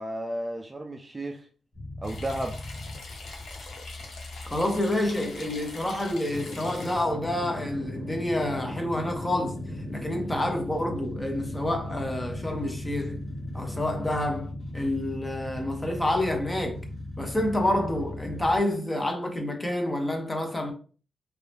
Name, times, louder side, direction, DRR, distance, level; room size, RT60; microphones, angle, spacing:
voice 1, 0.0-1.5 2.0-2.6, right 1 dB, 20° right, 0.3 m, -33 dB
sound 1, 1.7-18.6, left 1 dB, 50° left, 1.4 m, -38 dB
sound 2, 2.0-7.0, left 2 dB, 90° left, 0.8 m, -43 dB
voice 2, 4.5-9.5 9.9-13.2 13.5-16.8 17.2-20.7, left 1 dB, 15° left, 0.7 m, -28 dB
3.0 x 2.6 x 3.2 m
wide cardioid pair, 160°, 0 cm